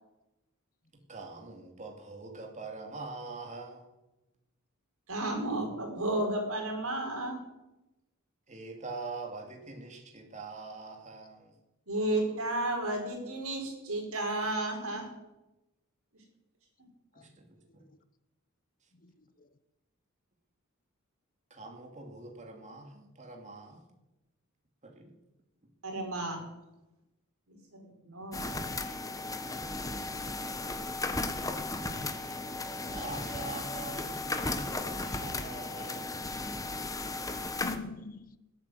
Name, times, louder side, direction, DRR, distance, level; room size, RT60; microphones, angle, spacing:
voice 1, 1.1-3.9 8.5-11.6 17.1-17.5 17.7-17.9 21.5-23.8 24.8-25.1 25.6-25.7 32.9-36.2, right 3 dB, 35° right, 2.6 m, -44 dB
voice 2, 5.1-7.4 11.9-15.1 25.8-26.4 27.5-28.5 28.8-28.9 32.3-32.4, right 1 dB, 80° right, 4.9 m, -33 dB
voice 3, 18.9-19.5 37.5-38.4, left 4 dB, 40° left, 0.8 m, -44 dB
sound 1, 28.3-37.8, left 2 dB, 15° left, 1.1 m, -35 dB
19.5 x 8.8 x 8.0 m
head